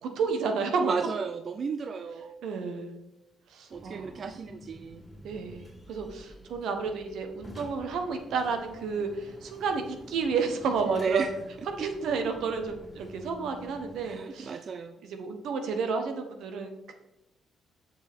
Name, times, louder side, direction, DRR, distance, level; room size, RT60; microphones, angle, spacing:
voice 1, 0.0-0.9 2.4-2.9 3.5-4.2 5.2-11.3 11.8-14.5 15.0-16.9, right 5 dB, 80° right, 5 dB, 1.2 m, -31 dB
voice 2, 0.8-2.4 3.7-5.0 10.9-11.3 11.8-12.1 14.0-15.0, right 5 dB, 50° right, 8 dB, 0.4 m, -33 dB
sound 1, 3.7-14.2, equal, 5° left, 2.5 m, -49 dB
7.3 x 6.6 x 3.6 m, 0.91 s
cardioid pair, 90°, 0 cm